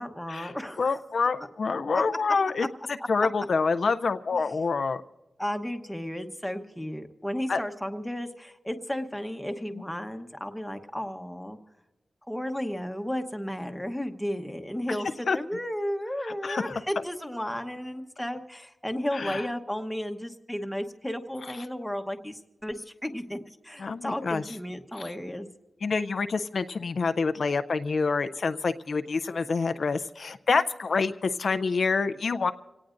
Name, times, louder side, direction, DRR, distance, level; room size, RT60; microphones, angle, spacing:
voice 1, 0.0-1.0 1.9-2.0 4.4-4.5 5.4-11.6 12.3-25.5, equal, 5° left, 5 dB, 1.0 m, -34 dB
voice 2, 0.8-2.7 3.1-5.0 7.5-7.6 9.7-9.8 15.3-15.4 16.3-16.7 19.1-19.4 23.8-24.4 25.0-25.1 25.8-32.5, left 4 dB, 60° left, 10 dB, 0.4 m, -27 dB
27.0 x 18.0 x 2.6 m, 1.1 s
wide cardioid pair, 140°, 0 cm